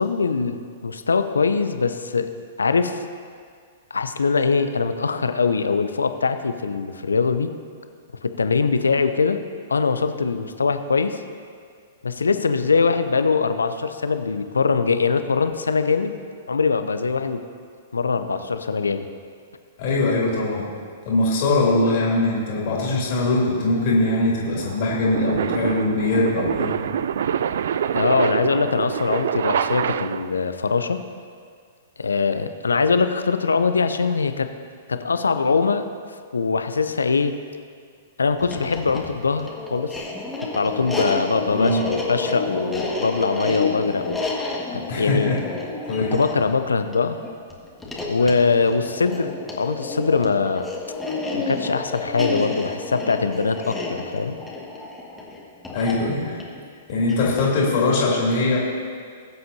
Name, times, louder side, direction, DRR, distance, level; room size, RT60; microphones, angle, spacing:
voice 1, 0.0-2.3 2.6-3.0 3.9-7.5 8.2-9.4 9.7-11.2 12.0-16.2 16.5-17.4 17.9-19.1 27.9-31.0 32.0-34.5 34.9-35.9 36.3-37.3 38.2-40.0 40.5-44.2 44.7-45.4 46.1-47.2 48.1-50.7 51.3-54.4, left 4 dB, 80° left, 9 dB, 0.7 m, -22 dB
voice 2, 19.8-20.7 21.0-26.7 41.5-41.8 44.9-45.4 45.9-46.1 55.7-56.4 56.9-58.6, left 2 dB, 50° left, -4 dB, 2.9 m, -21 dB
sound 1, 22.9-30.5, right 8 dB, 60° right, 0.3 m, -26 dB
sound 2, 38.4-57.6, left 3 dB, 5° left, 1.8 m, -30 dB
20.5 x 7.9 x 2.8 m, 2.1 s
figure-of-eight pair, 110°, 0 cm